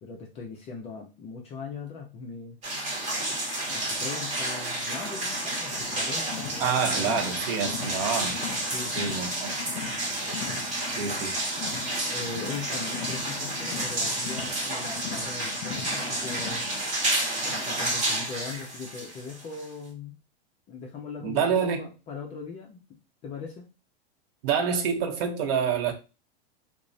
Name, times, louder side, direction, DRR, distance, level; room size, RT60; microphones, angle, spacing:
voice 1, 0.0-2.6 3.2-3.4 3.7-6.9 8.7-9.1 12.1-16.7 17.5-20.2 20.7-22.8 23.2-23.7, left 5 dB, 20° left, 0.3 m, -40 dB
sound 1, 2.6-19.9, right 1 dB, 25° right, 1.0 m, -31 dB
Car, 5.7-16.8, left 8 dB, 65° left, 0.6 m, -40 dB
voice 2, 6.6-8.4 9.0-9.5 11.0-11.3 21.2-21.9 24.4-25.9, right 6 dB, 65° right, 0.7 m, -27 dB
2.9 x 2.0 x 2.6 m
supercardioid pair, 135°, 32 cm